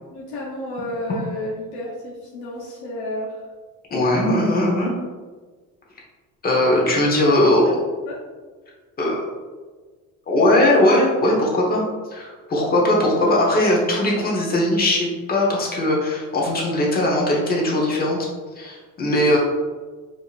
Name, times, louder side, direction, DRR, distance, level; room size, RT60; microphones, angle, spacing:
voice 1, 0.1-3.4 7.3-7.7 8.0-8.2 19.0-19.4, left 1 dB, 80° left, -5 dB, 1.0 m, -31 dB
voice 2, 3.9-4.9 6.4-7.7 9.0-9.2 10.3-11.8 12.1-18.2 18.6-19.4, left 1 dB, 25° left, -3 dB, 1.0 m, -19 dB
4.8 x 2.8 x 2.5 m, 1.4 s
cardioid pair, 135°, 35 cm